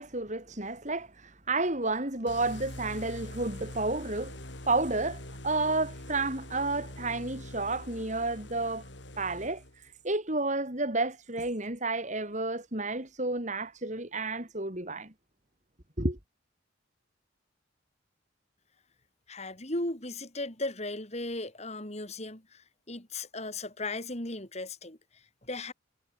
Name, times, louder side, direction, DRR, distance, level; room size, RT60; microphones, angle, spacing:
voice 1, 0.0-4.3 4.7-8.8 9.2-15.1 16.0-16.2, right 2 dB, 40° right, 4.3 m, -31 dB
sound 1, 2.3-9.9, left 1 dB, 65° left, 7.3 m, -44 dB
voice 2, 19.3-25.0 25.4-25.7, left 2 dB, 35° left, 4.5 m, -36 dB
head